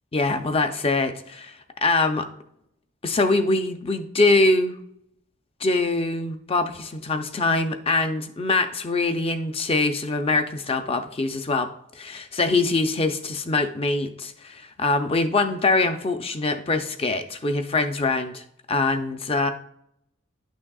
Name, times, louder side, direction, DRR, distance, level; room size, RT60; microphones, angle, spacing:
voice 1, 0.1-2.3 3.0-4.8 5.6-19.5, left 3 dB, 25° left, 7 dB, 0.5 m, -23 dB
11.0 x 6.2 x 2.3 m, 0.72 s
head